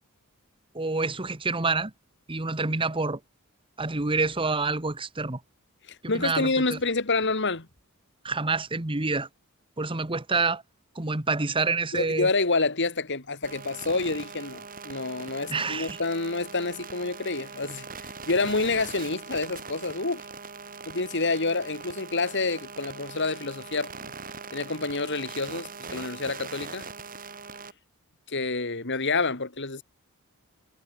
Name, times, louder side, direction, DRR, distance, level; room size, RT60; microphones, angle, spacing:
voice 1, 0.7-1.9 2.3-3.2 3.8-5.4 6.0-6.8 8.2-9.3 9.8-10.6 10.9-12.3 15.5-16.0, right 3 dB, 25° right, 1.3 m, -27 dB
voice 2, 5.9-7.7 11.9-20.3 20.8-24.1 24.5-26.9 28.3-29.8, left 3 dB, 55° left, 2.7 m, -28 dB
sound 1, 13.4-27.7, right 5 dB, 40° right, 7.8 m, -41 dB
head